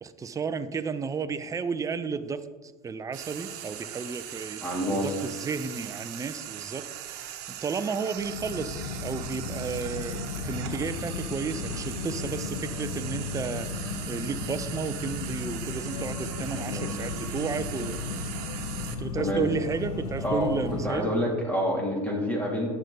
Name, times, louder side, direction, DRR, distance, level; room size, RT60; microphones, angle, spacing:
voice 1, 0.0-7.3 7.6-18.0 19.0-21.1, right 5 dB, 15° right, 10 dB, 0.6 m, -33 dB
Frying (food), 3.1-18.9, right 11 dB, 60° right, 1.2 m, -40 dB
voice 2, 4.6-5.1 16.5-16.9 19.2-19.4 20.2-20.5 20.8-22.7, equal, 5° left, -1 dB, 2.6 m, -28 dB
Plane Falling, 8.2-20.9, left 4 dB, 85° left, 1.3 m, -35 dB
11.5 x 6.9 x 3.9 m, 1.3 s
hypercardioid pair, 100°, 20 cm